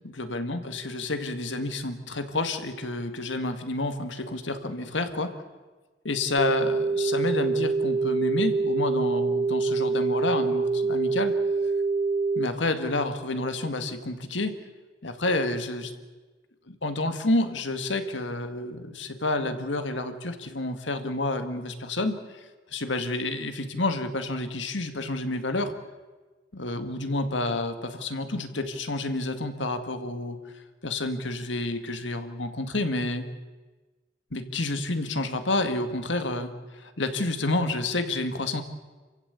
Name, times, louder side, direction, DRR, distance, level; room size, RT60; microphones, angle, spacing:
voice 1, 0.2-5.3 6.1-11.3 12.4-14.5 15.0-15.9 16.7-22.4 22.7-25.7 26.5-30.4 30.8-33.2 34.3-38.6, left 2 dB, 70° left, 8 dB, 2.0 m, -29 dB
sound 1, 6.4-12.5, right 4 dB, 35° right, 1.1 m, -25 dB
28.0 x 15.5 x 8.4 m, 1.3 s
head